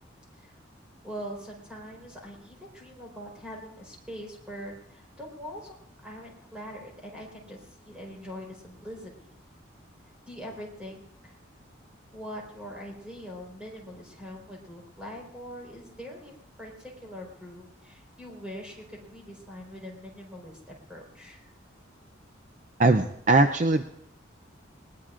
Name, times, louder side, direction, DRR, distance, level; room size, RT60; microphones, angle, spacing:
voice 1, 1.0-5.8 6.0-9.3 10.3-11.4 12.1-21.5, equal, 5° right, -1 dB, 4.0 m, -43 dB
voice 2, 22.8-23.8, right 2 dB, 40° right, 7 dB, 0.5 m, -20 dB
21.5 x 19.5 x 2.5 m, 0.72 s
head